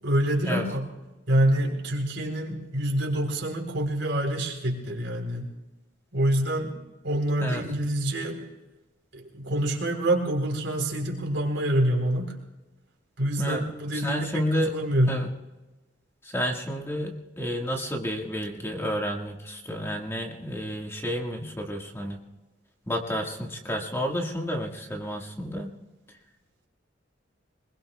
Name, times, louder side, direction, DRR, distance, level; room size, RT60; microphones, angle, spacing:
voice 1, 0.0-0.9 1.3-5.5 6.1-6.7 7.0-8.4 9.1-12.4 13.2-15.3, right 1 dB, 75° right, 1 dB, 3.7 m, -26 dB
voice 2, 13.9-14.7 15.1-15.3 16.2-22.2 22.9-25.7, equal, 15° left, 1 dB, 1.6 m, -30 dB
23.5 x 21.5 x 2.3 m, 1.1 s
head